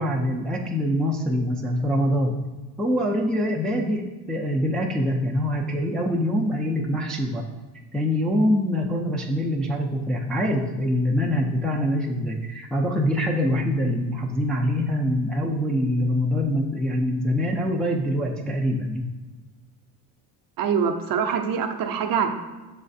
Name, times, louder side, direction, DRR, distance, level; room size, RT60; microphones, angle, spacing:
voice 1, 0.0-2.4 2.8-7.5 7.9-19.1, equal, ahead, -2 dB, 0.3 m, -24 dB
voice 2, 20.6-22.3, right 7 dB, 50° right, 6 dB, 0.5 m, -24 dB
6.3 x 3.2 x 2.6 m, 1.3 s
cardioid pair, 95°, 44 cm